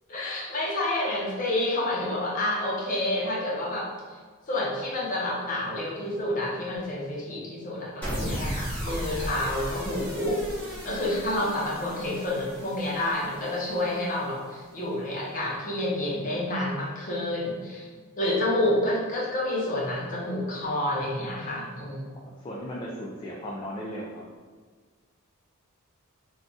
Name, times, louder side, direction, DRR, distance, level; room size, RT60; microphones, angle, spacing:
voice 1, 0.1-3.9 4.5-17.9 18.2-22.1, left 1 dB, 40° left, -5 dB, 0.7 m, -29 dB
sound 1, 8.0-14.4, equal, 10° left, 1.0 m, -36 dB
voice 2, 10.9-11.6 22.4-24.2, equal, 25° left, -5 dB, 0.3 m, -37 dB
2.4 x 2.4 x 3.8 m, 1.5 s
head